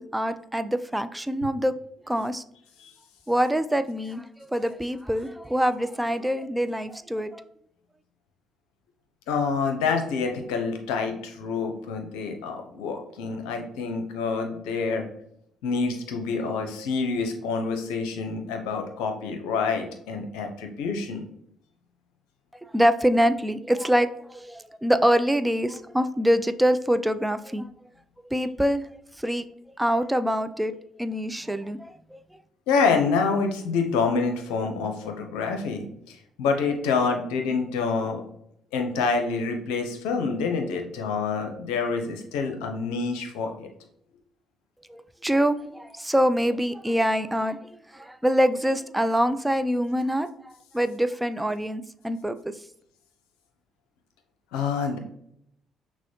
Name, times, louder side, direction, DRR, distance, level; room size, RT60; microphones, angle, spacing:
voice 1, 0.0-1.7 2.1-2.4 3.3-7.4 22.7-27.6 28.3-28.8 29.2-29.5 29.8-31.8 32.1-32.2 44.9-47.6 47.9-52.4, equal, 10° right, 11 dB, 0.3 m, -25 dB
voice 2, 9.3-15.1 15.6-21.2 32.7-38.2 38.7-43.7 54.5-55.0, left 4 dB, 75° left, 4 dB, 0.6 m, -27 dB
6.0 x 2.1 x 2.9 m, 0.72 s
hypercardioid pair, 50°, 0 cm